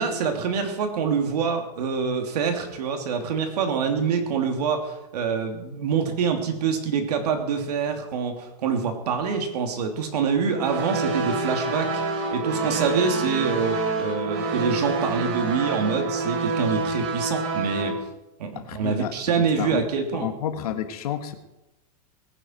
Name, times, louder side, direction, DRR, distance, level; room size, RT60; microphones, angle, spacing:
voice 1, 0.0-17.9 18.4-20.3, right 6 dB, 80° right, 4 dB, 3.1 m, -26 dB
sound 1, 10.6-17.9, right 3 dB, 45° right, 3.5 m, -27 dB
voice 2, 18.6-19.8 20.1-21.3, left 10 dB, 70° left, 8 dB, 1.7 m, -31 dB
20.5 x 10.5 x 4.6 m, 0.95 s
supercardioid pair, 175°, 20 cm